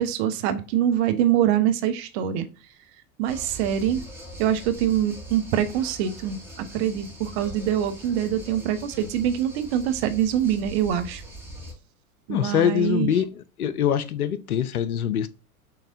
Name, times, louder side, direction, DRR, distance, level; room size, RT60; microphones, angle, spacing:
voice 1, 0.0-2.5 3.2-4.0 4.4-11.2 12.3-13.1, right 10 dB, 45° right, 0.8 m, -24 dB
sound 1, 3.3-11.7, equal, 5° right, 2.0 m, -41 dB
voice 2, 12.3-15.3, left 9 dB, 75° left, 0.6 m, -24 dB
6.5 x 3.1 x 2.6 m
figure-of-eight pair, 85°, 45 cm